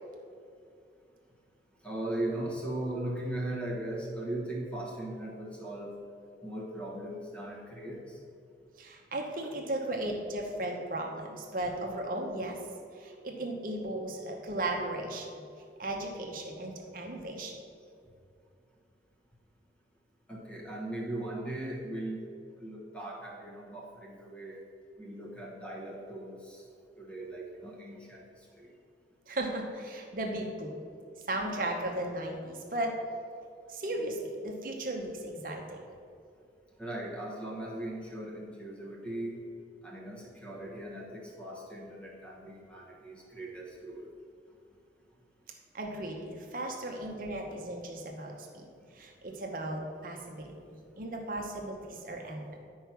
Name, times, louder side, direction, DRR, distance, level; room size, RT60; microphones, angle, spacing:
voice 1, 1.8-6.0 6.4-8.2 20.3-22.2 22.6-24.6 25.0-26.6 27.0-28.3 28.6-28.7 36.8-39.4 39.8-44.1, right 1 dB, 5° left, -3 dB, 1.2 m, -38 dB
voice 2, 8.8-12.6 12.9-15.3 15.8-17.6 29.3-30.7 31.3-32.9 33.7-35.8 45.7-48.6 48.9-50.6 51.0-52.6, right 1 dB, 50° right, 1 dB, 0.9 m, -36 dB
9.8 x 4.7 x 5.9 m, 2.4 s
head